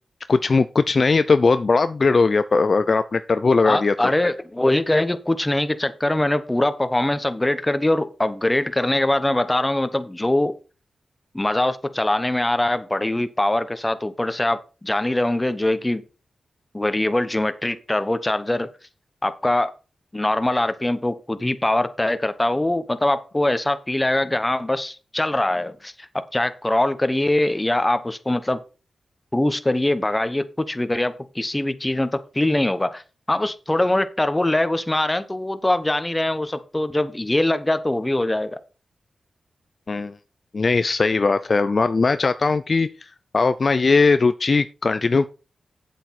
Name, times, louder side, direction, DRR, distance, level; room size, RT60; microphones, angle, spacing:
voice 1, 0.3-3.9 39.9-40.1 40.5-43.1 43.3-45.3, left 4 dB, 50° left, 12 dB, 0.5 m, -19 dB
voice 2, 3.6-10.5 11.3-16.0 16.7-18.7 19.2-19.7 20.1-28.6 29.3-33.0 33.3-38.6, left 1 dB, 15° left, 12 dB, 1.0 m, -22 dB
8.4 x 7.8 x 4.2 m, 0.33 s
cardioid pair, 60°, 0 cm